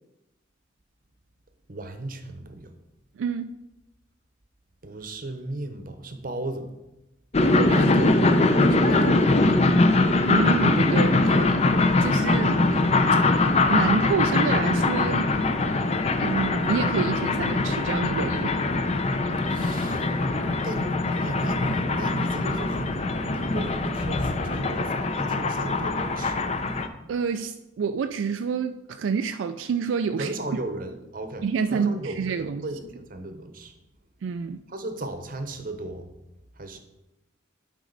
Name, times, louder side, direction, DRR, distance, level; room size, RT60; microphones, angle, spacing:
voice 1, 1.7-2.7 4.8-6.7 7.6-8.2 8.7-9.2 19.5-20.1 20.6-26.5 30.2-31.5 31.7-33.7 34.7-36.1 36.6-36.8, right 2 dB, 45° right, 8 dB, 0.8 m, -35 dB
voice 2, 3.2-3.5 10.3-11.6 12.0-15.3 16.2-18.6 27.1-30.3 31.4-32.7 34.2-34.6, right 6 dB, 75° right, 9 dB, 0.3 m, -28 dB
sound 1, 7.3-26.9, left 2 dB, 35° left, 0.5 m, -22 dB
11.0 x 5.2 x 4.0 m, 0.98 s
head